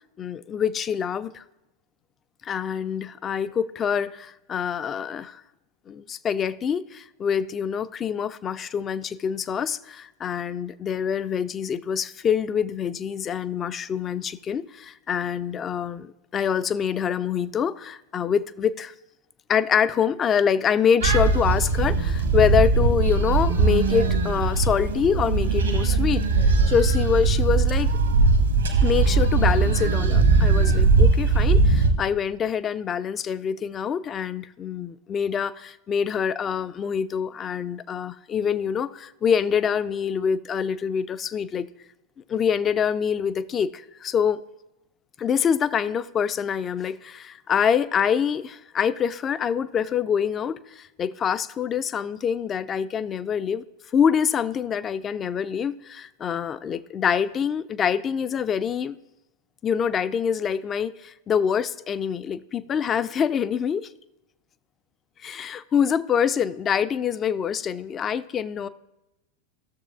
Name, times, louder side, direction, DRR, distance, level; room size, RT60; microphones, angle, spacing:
voice 1, 0.2-1.4 2.4-5.4 5.9-18.9 19.5-27.9 28.8-41.7 42.3-44.4 45.2-53.6 53.9-59.0 59.6-63.9 65.2-68.7, left 7 dB, 25° left, 0.3 m, -25 dB
sound 1, 21.0-31.9, right 4 dB, 70° right, 1.0 m, -20 dB
15.0 x 6.9 x 2.4 m
figure-of-eight pair, 90°, 0 cm